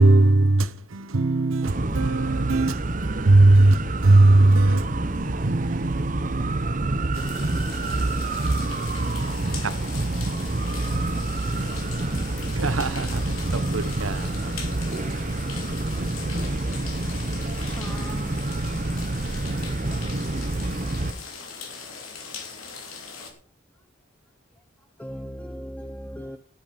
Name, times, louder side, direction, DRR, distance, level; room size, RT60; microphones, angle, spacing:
voice 1, 0.0-7.7 9.6-9.7 12.6-14.5, right 2 dB, 90° right, 1.0 m, -20 dB
sound 1, 1.6-21.1, right 2 dB, 40° right, 0.8 m, -27 dB
sound 2, 7.1-23.3, left 5 dB, 90° left, 3.5 m, -40 dB
voice 2, 11.5-12.9 15.5-17.1, left 2 dB, 45° left, 7.2 m, -53 dB
voice 3, 17.7-18.4 24.8-26.4, equal, 5° left, 0.7 m, -38 dB
15.5 x 7.9 x 5.2 m
head